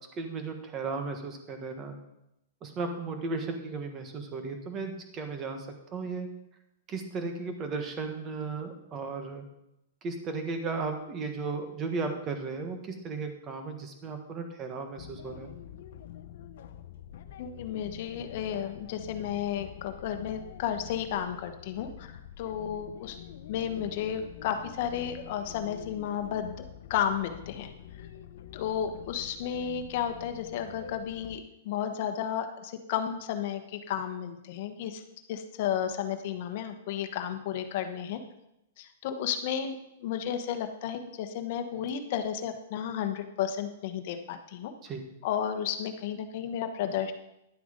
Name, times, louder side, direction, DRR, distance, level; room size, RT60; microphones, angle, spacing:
voice 1, 0.1-2.0 2.6-6.3 6.9-9.4 10.0-15.5 44.8-45.1, right 4 dB, 20° right, 5 dB, 1.5 m, -35 dB
sound 1, 15.0-31.4, left 10 dB, 60° left, 0.7 m, -46 dB
voice 2, 17.4-23.2 23.5-26.6 26.9-27.7 28.5-35.0 35.3-38.2 38.8-39.7 40.0-44.7 45.2-47.1, left 9 dB, 45° left, 7 dB, 1.2 m, -33 dB
11.0 x 7.9 x 5.2 m, 0.86 s
hypercardioid pair, 160°, 0 cm